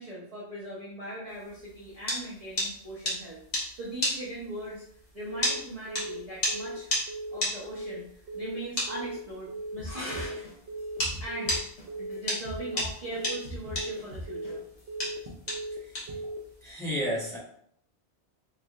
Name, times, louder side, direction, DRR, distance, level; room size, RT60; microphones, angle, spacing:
voice 1, 0.0-4.8 5.1-6.9 7.3-8.1 8.3-10.5 11.2-11.6 12.0-14.6, right 1 dB, 40° right, -8 dB, 0.7 m, -40 dB
sound 1, 1.5-11.2 11.5-16.7, left 1 dB, 40° left, 1.1 m, -31 dB
Telephone, 5.3-5.6 5.9-6.2 6.5-6.8 7.1-7.4 7.7-8.0 8.3-8.6 8.9-9.2 9.5-9.8 10.1-10.4 10.7-11.0 11.3-11.6 11.9-12.2 12.5-12.8 13.1-13.4 13.7-14.0 14.3-14.6 14.9-15.2 15.5-15.8 16.1-16.4, right 2 dB, 85° right, 0.9 m, -37 dB
sound 2, 9.8-12.1 12.4-14.8, equal, 70° left, 1.2 m, -40 dB
voice 2, 16.6-17.4, equal, 5° left, -7 dB, 1.0 m, -31 dB
3.2 x 3.2 x 2.4 m, 0.67 s
omnidirectional pair, 1.2 m